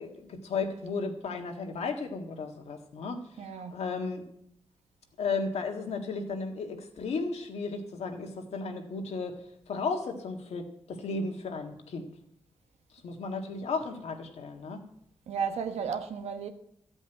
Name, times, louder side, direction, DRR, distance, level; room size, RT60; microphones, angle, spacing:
voice 1, 0.0-3.2 3.7-4.2 5.2-12.1 13.0-14.8, left 4 dB, 80° left, 1.7 m, -34 dB
voice 2, 3.4-3.8 15.3-16.5, right 6 dB, 85° right, 1.1 m, -33 dB
13.0 x 5.4 x 8.9 m
cardioid pair, 55°, 11 cm